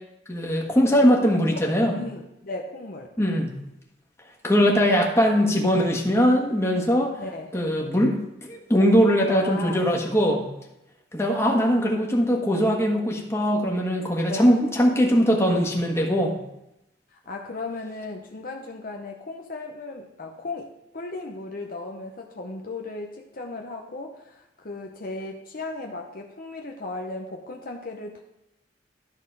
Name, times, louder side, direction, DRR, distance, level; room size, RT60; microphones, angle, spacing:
voice 1, 0.3-1.9 3.2-3.5 4.4-7.1 7.5-8.1 8.4-10.4 11.1-16.4, equal, 15° left, -1 dB, 1.6 m, -21 dB
voice 2, 1.5-3.4 7.2-7.5 9.3-9.8 14.3-14.4 17.1-28.2, left 2 dB, 50° left, 2 dB, 0.8 m, -36 dB
12.5 x 4.3 x 5.4 m, 0.86 s
head